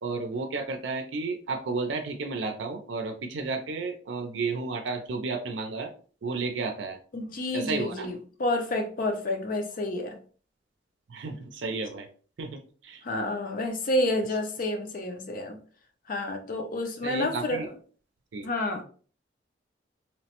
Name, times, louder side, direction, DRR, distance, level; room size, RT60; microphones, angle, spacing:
voice 1, 0.0-5.9 6.2-7.0 7.5-8.1 11.1-12.1 12.4-13.0 17.0-17.7 18.3-18.5, right 3 dB, 85° right, 4 dB, 0.5 m, -32 dB
voice 2, 7.1-10.2 13.0-15.6 16.1-17.6 18.4-18.8, left 1 dB, 50° left, 5 dB, 0.5 m, -29 dB
3.0 x 2.1 x 2.9 m, 0.42 s
head